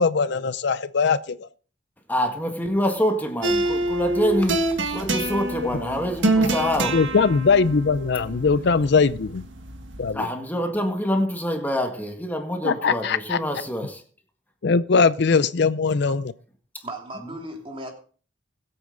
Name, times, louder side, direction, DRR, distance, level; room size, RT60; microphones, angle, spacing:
voice 1, 0.0-1.5 6.9-9.4 10.0-10.3 12.6-13.4 14.6-16.2, left 5 dB, 60° left, 0.5 m, -21 dB
voice 2, 2.1-7.0 10.1-14.0, equal, 10° left, 1.7 m, -26 dB
sound 1, 3.4-10.1, right 2 dB, 75° right, 1.7 m, -26 dB
voice 3, 16.8-17.9, right 1 dB, 30° right, 3.2 m, -36 dB
21.0 x 8.6 x 3.9 m
head